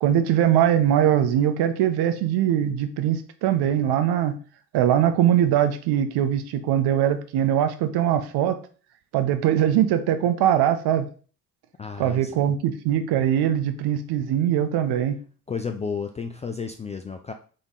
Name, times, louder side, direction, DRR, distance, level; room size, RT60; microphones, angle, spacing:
voice 1, 0.0-4.4 4.7-8.6 9.1-11.1 12.0-15.2, right 10 dB, 55° right, 9 dB, 0.7 m, -21 dB
voice 2, 11.8-12.4 15.5-17.3, left 5 dB, 15° left, 5 dB, 0.3 m, -32 dB
3.8 x 3.5 x 4.0 m, 0.40 s
figure-of-eight pair, 45°, 47 cm